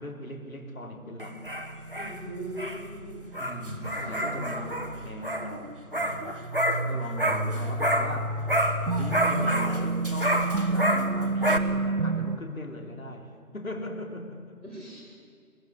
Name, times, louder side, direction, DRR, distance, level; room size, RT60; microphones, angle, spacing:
voice 1, 0.0-1.4 3.4-6.4 6.9-8.4 8.9-14.6, left 1 dB, 60° left, 4 dB, 3.6 m, -39 dB
sound 1, 1.2-8.2 8.5-11.6, right 1 dB, 35° right, 1.2 m, -29 dB
voice 2, 1.9-3.1 3.8-4.2 14.6-14.9, right 1 dB, 5° right, -16 dB, 3.1 m, -40 dB
sound 2, 7.3-12.4, right 2 dB, 85° right, 1.2 m, -29 dB
22.0 x 21.5 x 8.6 m, 2.3 s
figure-of-eight pair, 175°, 46 cm